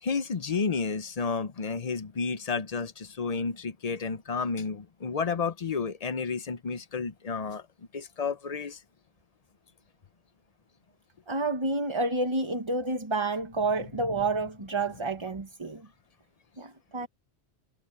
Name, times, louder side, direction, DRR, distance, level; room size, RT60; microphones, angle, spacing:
voice 1, 0.0-7.6 7.9-8.8, left 5 dB, 40° left, 0.7 m, -31 dB
voice 2, 11.3-15.9 16.6-17.1, right 2 dB, 30° right, 1.1 m, -29 dB
omnidirectional pair, 1.1 m